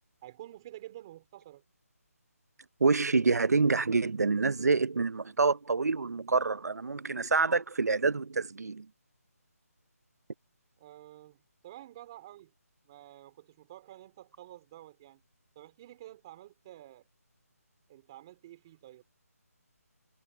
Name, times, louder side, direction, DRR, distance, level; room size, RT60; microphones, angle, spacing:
voice 1, 0.2-1.6 10.8-11.4 11.6-12.5 12.9-15.2 15.6-17.1 17.9-19.0, right 14 dB, 15° right, 3.8 m, -50 dB
voice 2, 2.8-8.9, right 4 dB, 85° right, 0.8 m, -27 dB
hypercardioid pair, 175°, 9 cm